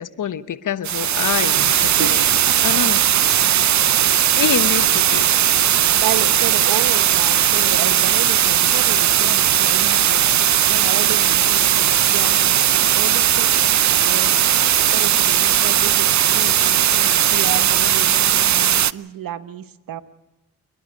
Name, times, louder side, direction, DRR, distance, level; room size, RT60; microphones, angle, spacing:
voice 1, 0.0-2.2 2.6-3.0 3.4-3.5 4.4-5.4, left 8 dB, 60° left, 14 dB, 1.2 m, -26 dB
sound 1, 0.8-18.9, right 10 dB, 55° right, 0.7 m, -17 dB
voice 2, 5.8-10.2 10.7-13.5 13.9-14.4 14.9-20.0, right 10 dB, 70° right, 12 dB, 1.3 m, -31 dB
27.5 x 11.0 x 9.5 m, 0.98 s
supercardioid pair, 40°, 35 cm